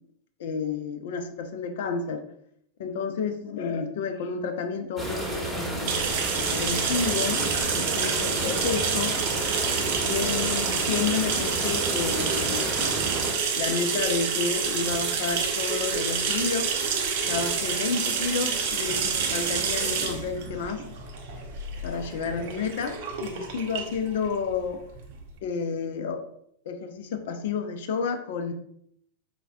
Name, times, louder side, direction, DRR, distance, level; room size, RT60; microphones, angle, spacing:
voice 1, 0.4-2.2 2.8-5.9 6.5-7.4 7.7-9.2 9.8-12.9 13.5-16.7 17.2-20.8 21.8-24.8 25.4-26.2 26.7-28.5, left 5 dB, 55° left, 7 dB, 0.4 m, -30 dB
sound 1, 5.0-13.3, right 1 dB, 5° right, 0.9 m, -31 dB
sound 2, 5.9-25.3, right 6 dB, 50° right, 0.5 m, -28 dB
4.7 x 2.1 x 2.3 m, 0.69 s
figure-of-eight pair, 90°, 0 cm